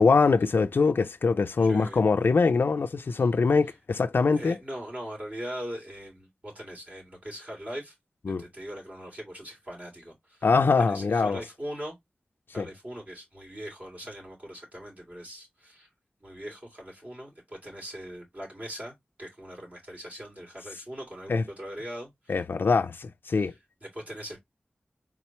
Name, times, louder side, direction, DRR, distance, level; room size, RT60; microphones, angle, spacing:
voice 1, 0.0-4.6 8.3-8.4 10.4-11.4 12.6-12.7 21.3-21.4 22.3-23.5, left 4 dB, 80° left, 0.4 m, -23 dB
voice 2, 1.6-2.0 4.3-8.0 8.3-10.5 10.8-11.9 12.5-15.9 16.2-22.4 23.3-24.4, equal, 45° right, 3.1 m, -41 dB
4.3 x 3.8 x 2.9 m
wide cardioid pair, 70°, 4 cm